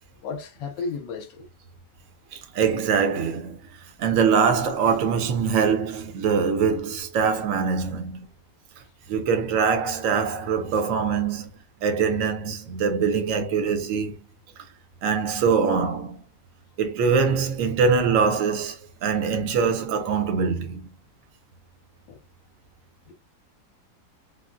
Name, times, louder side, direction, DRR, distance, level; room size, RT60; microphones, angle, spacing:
voice 1, 0.2-1.5 22.1-22.2 23.1-23.2, left 4 dB, 80° left, 1.2 m, -33 dB
voice 2, 2.3-8.3 9.1-11.5 11.8-14.2 15.0-16.2 16.8-20.9, right 6 dB, 70° right, 0.8 m, -23 dB
3.6 x 2.0 x 2.4 m
omnidirectional pair, 2.1 m